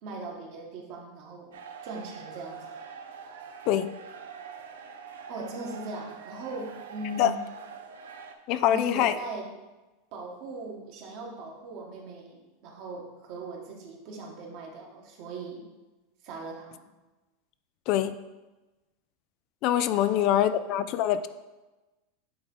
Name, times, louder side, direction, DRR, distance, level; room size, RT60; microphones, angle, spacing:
voice 1, 0.0-1.5 1.8-2.7 5.3-7.5 8.7-9.5 10.1-15.6 16.2-16.8 19.9-20.5, right 2 dB, 55° right, 0 dB, 1.6 m, -39 dB
sound 1, 1.5-8.3, right 6 dB, 80° right, 0.6 m, -44 dB
voice 2, 8.5-9.1 17.9-18.2 19.6-21.3, left 11 dB, 55° left, 12 dB, 0.3 m, -24 dB
8.6 x 3.5 x 3.8 m, 1.1 s
hypercardioid pair, 95°, 0 cm